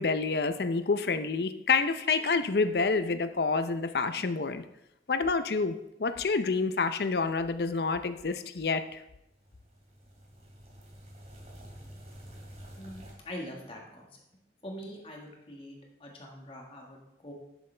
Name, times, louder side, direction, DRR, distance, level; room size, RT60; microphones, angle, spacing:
voice 1, 0.0-4.6 5.1-9.0, left 4 dB, 65° left, 11 dB, 0.6 m, -28 dB
sound 1, 9.3-13.1, equal, 40° right, 2.5 m, -49 dB
voice 2, 12.8-14.1 14.6-17.3, equal, 30° left, 0 dB, 1.6 m, -44 dB
11.5 x 7.1 x 3.3 m, 0.86 s
head